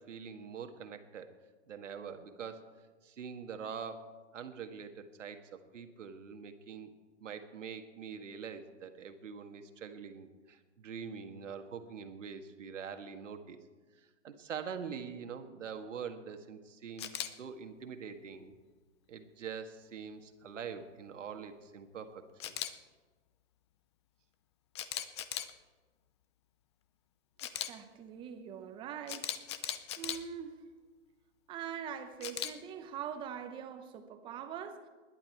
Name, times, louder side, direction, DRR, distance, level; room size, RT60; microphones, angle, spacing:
voice 1, 0.0-1.3 1.7-2.6 3.0-6.9 7.2-13.6 14.2-18.5 19.1-22.8, right 6 dB, 80° right, 7 dB, 1.7 m, -44 dB
Camera, 17.0-17.3 22.4-22.7 24.7-25.5 27.4-27.7 29.1-30.2 32.2-32.5, left 10 dB, 25° left, 0.5 m, -37 dB
voice 2, 27.5-29.3 30.0-30.6 31.5-34.9, right 8 dB, 15° right, 8 dB, 0.8 m, -43 dB
20.0 x 10.5 x 4.6 m, 1.3 s
hypercardioid pair, 150°, 37 cm